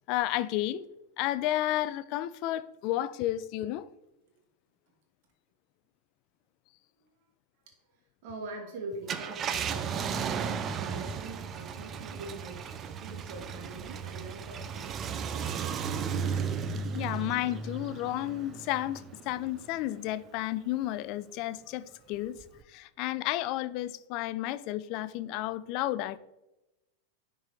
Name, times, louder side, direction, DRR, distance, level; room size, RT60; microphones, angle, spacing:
voice 1, 0.1-0.9 1.2-3.9 16.9-26.2, left 14 dB, 40° left, 0.3 m, -32 dB
voice 2, 7.7-12.7 13.0-16.0, right 3 dB, 45° right, 1.7 m, -44 dB
Car, 8.9-19.8 20.3-20.4 22.4-22.6, right 6 dB, 25° right, 0.4 m, -35 dB
10.0 x 3.8 x 3.1 m
figure-of-eight pair, 90°, 0 cm